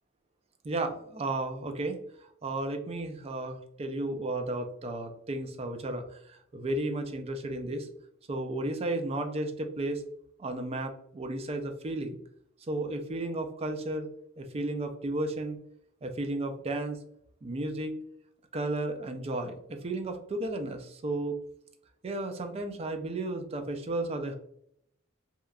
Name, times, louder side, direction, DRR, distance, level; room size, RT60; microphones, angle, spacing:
voice 1, 0.6-7.9 8.3-10.0 10.4-12.2 12.7-14.1 14.4-15.6 16.0-17.0 17.4-18.0 18.5-21.4 22.0-24.3, right 2 dB, 30° right, 5 dB, 0.4 m, -33 dB
2.9 x 2.3 x 2.3 m, 0.69 s
head